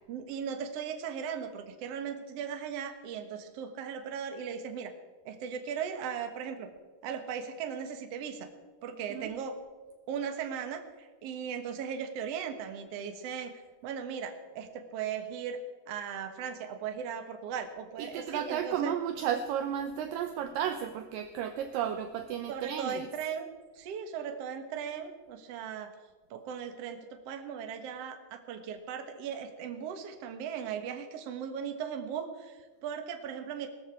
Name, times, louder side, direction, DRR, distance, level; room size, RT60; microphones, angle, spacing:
voice 1, 0.1-4.9 5.3-6.7 7.0-8.5 8.8-9.6 10.1-15.6 15.9-18.9 22.5-25.9 26.3-33.7, right 7 dB, 55° right, 6 dB, 1.8 m, -38 dB
voice 2, 18.0-23.1, right 9 dB, 75° right, 8 dB, 2.1 m, -33 dB
19.5 x 13.5 x 4.7 m, 1.4 s
omnidirectional pair, 4.5 m